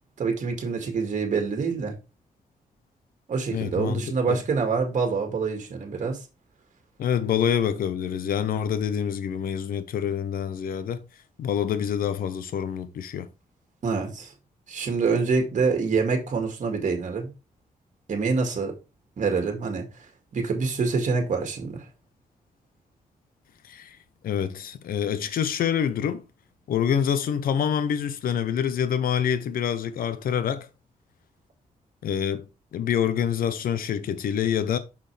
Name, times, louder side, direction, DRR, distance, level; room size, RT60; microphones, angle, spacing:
voice 1, 0.2-1.9 3.3-6.2 13.8-14.3 14.7-17.3 18.1-18.8 19.2-19.8 20.3-21.8, right 4 dB, 60° right, 2.0 m, -26 dB
voice 2, 3.5-4.4 7.0-11.0 11.4-13.3 23.6-24.0 24.2-26.2 26.7-30.7 32.0-32.5 32.7-34.8, left 8 dB, 90° left, 0.8 m, -26 dB
6.2 x 6.1 x 3.4 m
cardioid pair, 90°, 14 cm